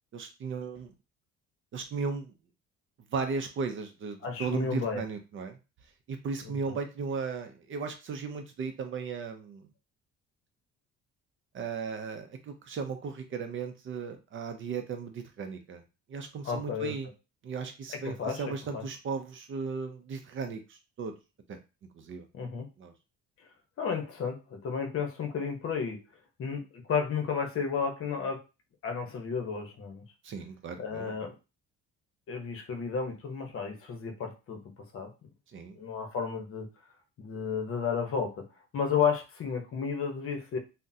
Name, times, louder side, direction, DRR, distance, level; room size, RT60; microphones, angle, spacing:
voice 1, 0.1-0.9 1.7-2.3 3.1-5.6 6.1-9.7 11.5-15.8 16.1-17.1 17.4-21.1 21.5-21.6 21.9-22.3 22.8-22.9 30.2-31.2 35.5-35.7, right 5 dB, 45° right, 6 dB, 0.5 m, -36 dB
voice 2, 4.2-5.0 6.4-6.8 16.4-16.9 18.0-18.4 18.7-18.8 22.3-22.7 23.8-26.0 26.4-28.4 28.8-30.0 30.8-31.3 32.3-34.6 34.9-35.1 35.7-36.7 37.2-38.4 38.7-40.6, left 6 dB, 50° left, 3 dB, 0.8 m, -32 dB
3.6 x 2.1 x 2.7 m, 0.28 s
cardioid pair, 145°, 29 cm